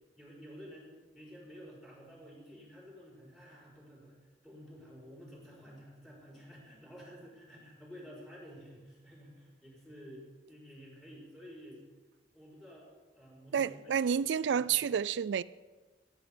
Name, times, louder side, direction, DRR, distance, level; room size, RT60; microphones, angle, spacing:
voice 1, 0.2-4.1 4.4-11.8 12.3-13.9 14.5-14.7, equal, ahead, 4.6 m, -52 dB
voice 2, 13.5-15.4, right 7 dB, 85° right, 0.3 m, -29 dB
11.5 x 10.5 x 5.1 m
head